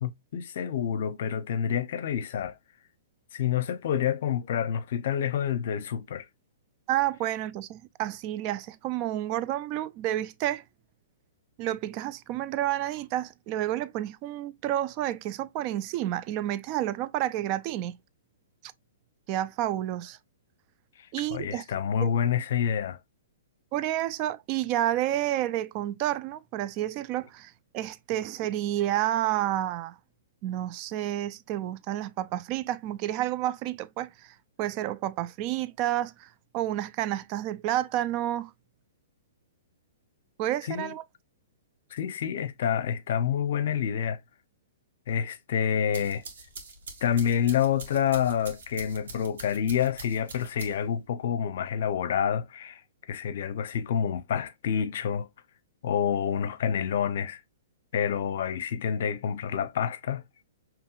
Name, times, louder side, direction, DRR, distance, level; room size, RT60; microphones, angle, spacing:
voice 1, 0.0-2.6 3.3-6.3 21.3-23.0 40.6-40.9 41.9-44.2 45.1-46.2 47.0-52.8 53.1-55.3 55.8-57.4 57.9-60.2, left 8 dB, 60° left, 0.7 m, -28 dB
voice 2, 6.9-10.6 11.6-18.0 19.3-20.2 21.1-21.6 22.0-22.1 23.7-30.0 30.4-36.3 36.5-38.5 40.4-41.0, right 13 dB, 35° right, 0.4 m, -30 dB
sound 1, 45.7-51.0, right 3 dB, 75° right, 1.8 m, -44 dB
5.4 x 3.0 x 2.4 m
hypercardioid pair, 135°, 0 cm